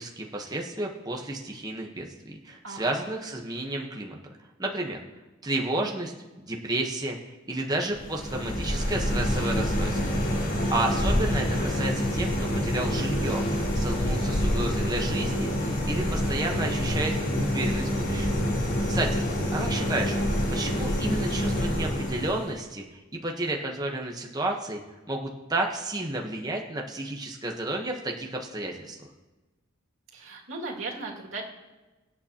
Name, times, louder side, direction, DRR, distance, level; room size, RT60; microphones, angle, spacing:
voice 1, 0.0-4.2 4.6-5.0 5.4-6.1 6.4-7.2 7.5-10.2 10.5-13.4 13.7-18.3 18.9-19.2 19.5-20.2 20.5-24.8 25.1-29.0, right 2 dB, 20° right, 0 dB, 1.1 m, -31 dB
voice 2, 2.6-3.1 10.5-11.2 30.1-31.4, right 3 dB, 90° right, -2 dB, 2.3 m, -38 dB
sound 1, 7.9-22.6, equal, 85° left, 3.5 m, -27 dB
24.0 x 8.6 x 2.9 m, 1.2 s
head